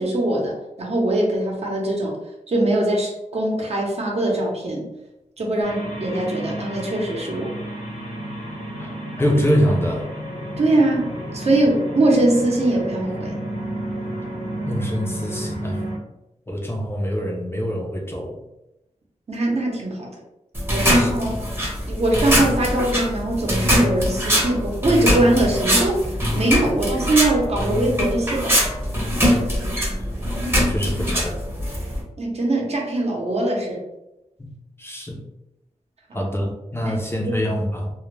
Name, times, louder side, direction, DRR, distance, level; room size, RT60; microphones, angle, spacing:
voice 1, 0.0-2.1 2.5-4.9 5.4-7.5 10.6-13.4 19.3-20.1 20.7-21.3 21.9-26.0 26.3-28.6 32.2-33.8 36.1-36.3 36.8-37.0 37.3-37.4, right 2 dB, 55° right, -1 dB, 0.7 m, -22 dB
sound 1, 5.6-16.0, right 1 dB, 70° left, 0.8 m, -31 dB
voice 2, 9.2-10.1 14.6-15.8 16.5-18.4 20.8-21.1 30.3-31.4 34.4-34.5 34.8-35.2 36.1-37.9, equal, 20° left, 0 dB, 0.4 m, -25 dB
sound 2, 20.5-32.0, equal, 20° right, 0.7 m, -22 dB
2.1 x 2.1 x 3.1 m, 0.92 s
wide cardioid pair, 85°, 13 cm